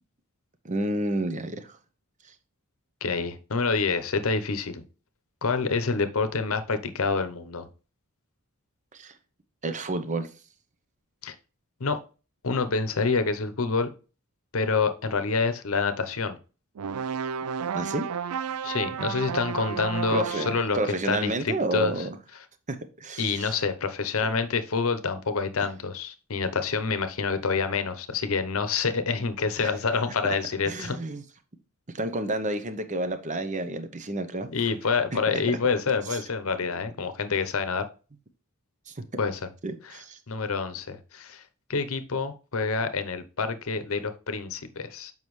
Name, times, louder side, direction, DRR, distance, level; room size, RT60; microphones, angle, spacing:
voice 1, 0.6-1.7 8.9-9.1 9.6-10.3 17.7-18.1 20.1-22.1 23.0-23.5 29.6-29.7 30.7-31.2 31.9-34.5 36.1-36.2 38.9-39.0 39.6-40.2, right 2 dB, 35° right, 0.8 m, -30 dB
voice 2, 3.0-4.8 5.4-7.7 11.2-11.3 11.8-12.0 12.4-13.9 14.5-16.4 18.6-22.1 23.2-31.0 34.5-37.9 39.2-39.5 39.8-40.0 40.3-41.4 41.7-45.1, left 4 dB, 65° left, 0.8 m, -27 dB
sound 1, 16.8-20.7, right 7 dB, 90° right, 0.4 m, -32 dB
7.2 x 5.5 x 3.2 m
head